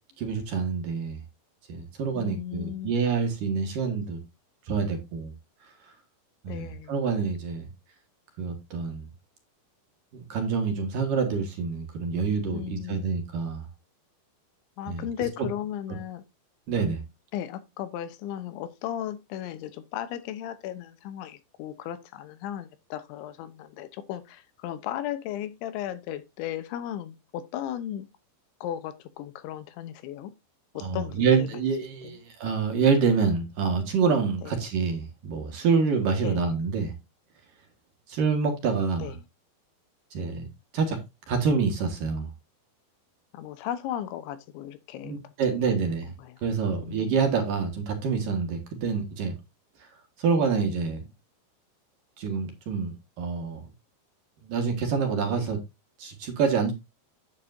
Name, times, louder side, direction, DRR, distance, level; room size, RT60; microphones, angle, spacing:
voice 1, 0.2-1.2 1.7-4.2 4.7-5.3 6.4-7.7 8.4-9.1 10.1-13.6 14.9-15.0 16.7-17.0 30.8-37.0 38.1-39.1 40.1-40.5 40.7-41.0 41.3-42.3 45.0-46.1 46.4-49.4 49.8-49.9 50.2-51.0 52.2-53.6 54.4-55.6 56.0-56.7, right 5 dB, 60° right, 2.7 m, -27 dB
voice 2, 2.1-3.0 6.5-6.9 12.5-13.1 14.8-16.2 17.3-28.1 28.6-30.3 30.7-31.5 32.0-32.2 34.4-34.6 36.2-36.5 39.0-39.2 43.3-45.2 45.5-46.4 46.7-47.1 55.3-55.5, left 11 dB, 85° left, 3.2 m, -36 dB
9.9 x 8.5 x 2.7 m
omnidirectional pair, 5.2 m